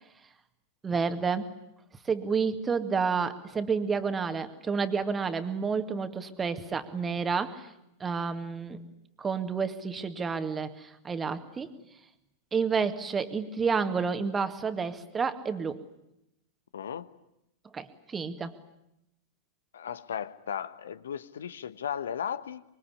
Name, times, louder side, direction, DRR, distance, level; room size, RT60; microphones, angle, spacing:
voice 1, 0.8-1.5 2.1-7.7 8.0-8.8 9.2-11.7 12.5-15.8 17.7-18.5, right 5 dB, 20° right, 2.0 m, -30 dB
voice 2, 16.7-17.1 19.7-22.6, left 8 dB, 65° left, 1.2 m, -35 dB
25.0 x 23.5 x 9.9 m
figure-of-eight pair, 90°, 0 cm